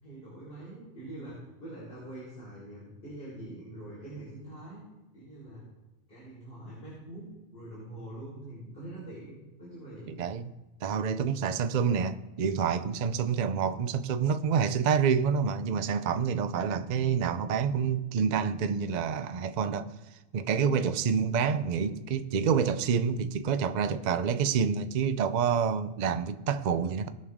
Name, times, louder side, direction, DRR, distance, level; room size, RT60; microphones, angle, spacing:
voice 1, 0.0-4.8 5.1-5.6 6.1-10.2, right 1 dB, 45° left, 4.7 m, -44 dB
voice 2, 10.1-10.5 10.8-19.9 20.3-27.1, right 6 dB, 50° right, 0.5 m, -28 dB
20.0 x 6.8 x 3.6 m
omnidirectional pair, 1.4 m